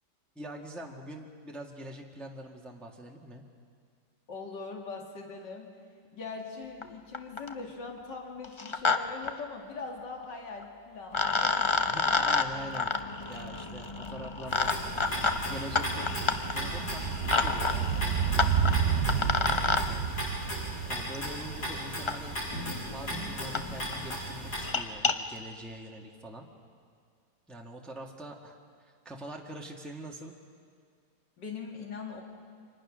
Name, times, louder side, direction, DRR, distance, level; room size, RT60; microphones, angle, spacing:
voice 1, 0.3-3.4 11.9-12.9 13.3-14.7 15.0-16.1 16.4-18.6 18.8-19.2 19.5-20.1 20.9-26.5 27.5-30.3, right 1 dB, ahead, 0 dB, 1.6 m, -44 dB
voice 2, 4.3-5.7 6.1-11.8 19.4-19.5 31.4-32.2, left 4 dB, 85° left, 1 dB, 2.8 m, -41 dB
sound 1, 6.8-6.9 7.1-7.6 8.4-9.0 9.2-9.3 10.6-10.7 11.1-19.8 21.1-21.2 22.1-22.2 22.8-22.9 23.1-23.2 23.5-23.6 23.9-24.1 24.5-25.1, left 4 dB, 40° left, 0.4 m, -29 dB
sound 2, 12.1-12.2 12.4-22.8 23.1-23.2, right 8 dB, 55° right, 1.1 m, -32 dB
sound 3, 14.5-24.7, equal, 65° left, 6.3 m, -36 dB
29.5 x 25.5 x 6.3 m, 2.1 s
omnidirectional pair, 1.8 m